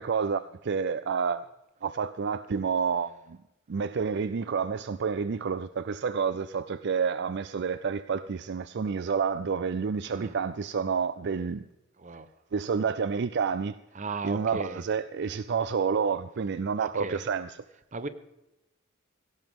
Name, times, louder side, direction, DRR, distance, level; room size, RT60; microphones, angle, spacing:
voice 1, 0.0-1.4 1.8-3.4 3.7-11.7 12.5-13.8 14.2-17.6, right 6 dB, 60° right, 0.4 m, -29 dB
voice 2, 13.9-14.8 16.8-17.2 17.9-18.1, right 3 dB, 40° right, 0.9 m, -36 dB
17.5 x 17.0 x 3.7 m
head